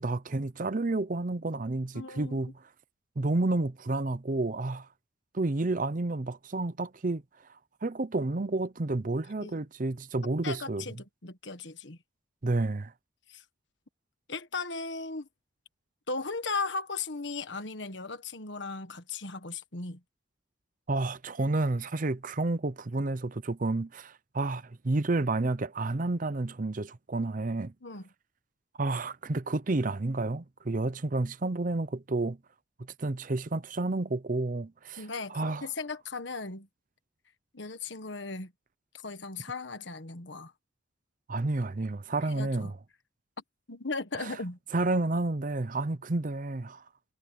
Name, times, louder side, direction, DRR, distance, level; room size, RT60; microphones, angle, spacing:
voice 1, 0.0-2.5 3.2-4.9 5.3-7.2 7.8-10.8 12.4-12.9 20.9-27.7 28.8-32.4 33.0-35.0 35.3-35.7 41.3-42.8 44.2-44.3 44.7-46.8, right 2 dB, 40° right, 0.6 m, -30 dB
voice 2, 1.9-2.4 9.4-9.6 10.4-12.0 13.3-13.4 14.3-15.3 16.1-20.0 27.8-28.1 35.0-36.7 37.5-38.5 39.0-40.5 42.2-42.7 43.7-44.6, left 3 dB, 60° left, 1.6 m, -37 dB
head